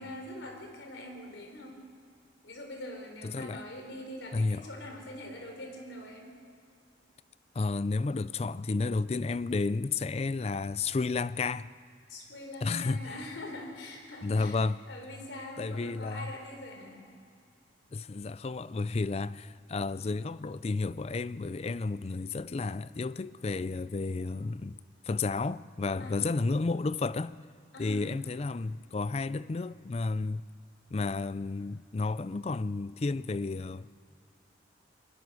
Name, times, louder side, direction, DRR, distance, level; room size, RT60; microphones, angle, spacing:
voice 1, 0.0-1.8 2.4-6.3 12.1-14.6 14.9-17.0 26.0-26.2 27.7-28.1, left 1 dB, 80° left, 4.1 m, -43 dB
voice 2, 3.2-3.6 4.3-4.7 7.5-11.7 12.6-13.2 14.2-14.8 15.6-16.3 17.9-24.8 25.1-27.3 27.8-30.4 30.9-34.0, left 3 dB, 35° left, 0.4 m, -32 dB
21.5 x 20.5 x 6.2 m
head